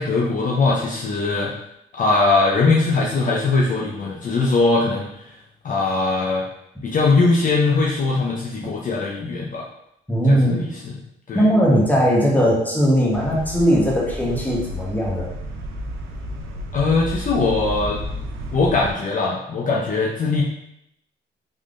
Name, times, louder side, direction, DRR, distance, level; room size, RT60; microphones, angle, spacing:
voice 1, 0.0-1.5 1.9-5.3 5.6-6.5 6.8-9.7 10.3-11.0 11.3-11.5 16.7-18.0 18.5-20.4, left 3 dB, 40° left, -3 dB, 0.6 m, -20 dB
voice 2, 10.1-10.6 11.3-15.3, equal, 10° left, -4 dB, 1.1 m, -18 dB
sound 1, 13.1-18.9, equal, 90° right, 0.5 m, -32 dB
3.6 x 3.1 x 2.5 m, 0.78 s
cardioid pair, 90°, 20 cm